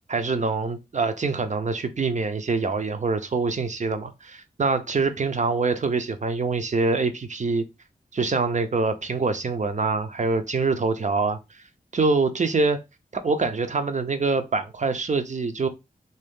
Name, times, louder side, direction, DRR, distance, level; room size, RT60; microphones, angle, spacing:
voice 1, 0.1-7.6 8.1-11.4 11.9-12.8 13.1-15.7, right 4 dB, 50° right, 0.6 m, -25 dB
3.0 x 2.8 x 3.5 m
wide cardioid pair, 70°, 16 cm